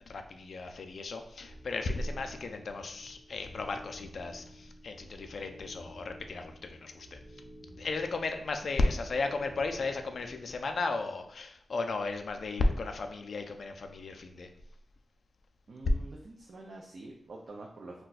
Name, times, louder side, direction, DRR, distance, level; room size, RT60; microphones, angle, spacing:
voice 1, 0.1-7.2 7.8-14.5, left 3 dB, 55° left, 5 dB, 0.3 m, -34 dB
sound 1, 1.4-10.6, equal, 65° right, 1.0 m, -53 dB
voice 2, 15.7-18.0, right 2 dB, 50° right, -1 dB, 0.4 m, -46 dB
2.4 x 2.2 x 3.9 m, 0.68 s
wide cardioid pair, 165°, 0 cm